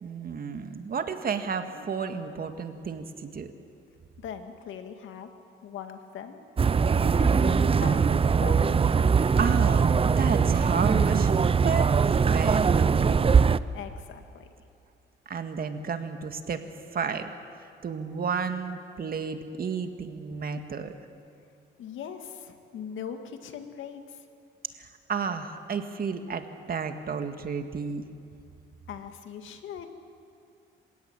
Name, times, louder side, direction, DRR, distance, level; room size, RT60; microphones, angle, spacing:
voice 1, 0.0-3.5 9.4-9.9 10.2-11.3 11.6-13.1 15.3-16.6 16.9-17.3 17.8-20.9 24.8-28.1, right 6 dB, 50° right, 7 dB, 1.9 m, -32 dB
voice 2, 4.2-5.3 5.6-6.4 7.2-8.8 13.7-14.5 21.8-24.2 28.9-29.9, left 8 dB, 75° left, 6 dB, 2.1 m, -40 dB
sound 1, 6.6-13.6, right 6 dB, 30° right, 0.6 m, -21 dB
27.0 x 16.5 x 9.0 m, 2.5 s
cardioid pair, 90°, 20 cm